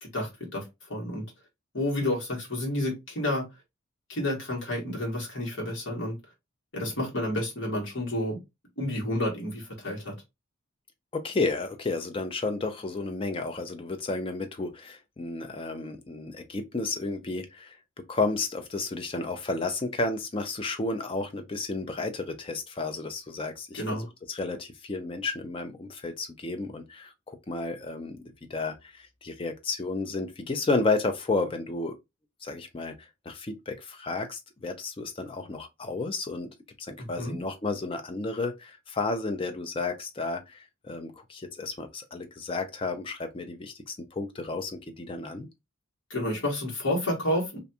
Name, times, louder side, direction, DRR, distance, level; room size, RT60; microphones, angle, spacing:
voice 1, 0.0-1.2 1.7-3.4 4.1-6.2 6.7-8.4 8.8-10.1 23.7-24.1 37.0-37.4 46.1-47.6, left 1 dB, 60° left, 1.3 m, -30 dB
voice 2, 11.1-17.8 18.1-28.2 28.5-32.0 32.4-32.9 33.3-45.5, left 3 dB, 25° left, 0.4 m, -32 dB
2.5 x 2.2 x 2.7 m
head